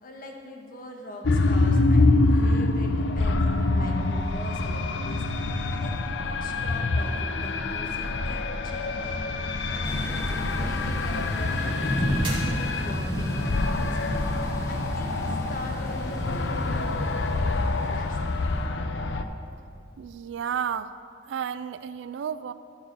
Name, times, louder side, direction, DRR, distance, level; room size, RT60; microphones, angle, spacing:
voice 1, 0.0-9.3 9.7-9.9 10.6-17.6 17.8-18.5, left 1 dB, 50° left, 1 dB, 1.2 m, -42 dB
sound 1, 1.2-19.2, left 2 dB, 80° left, 0.5 m, -26 dB
sound 2, 2.7-4.6 5.1-8.9 9.2-11.1 11.7-12.6, right 1 dB, 30° right, 2.3 m, -37 dB
Thunder / Rain, 9.8-18.6, equal, 15° left, 1.1 m, -32 dB
voice 2, 20.0-20.9 21.3-22.5, right 8 dB, 90° right, 14 dB, 0.3 m, -32 dB
14.0 x 4.8 x 6.6 m, 2.6 s
head